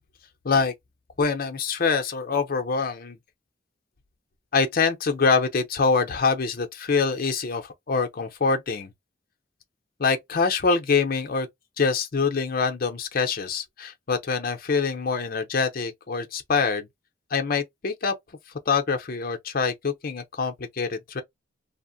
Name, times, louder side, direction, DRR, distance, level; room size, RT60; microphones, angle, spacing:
voice 1, 1.2-3.2 4.5-8.9 10.0-11.5 11.8-16.9 17.3-18.1 18.7-21.2, left 4 dB, 50° left, 0.6 m, -25 dB
2.7 x 2.0 x 2.6 m
head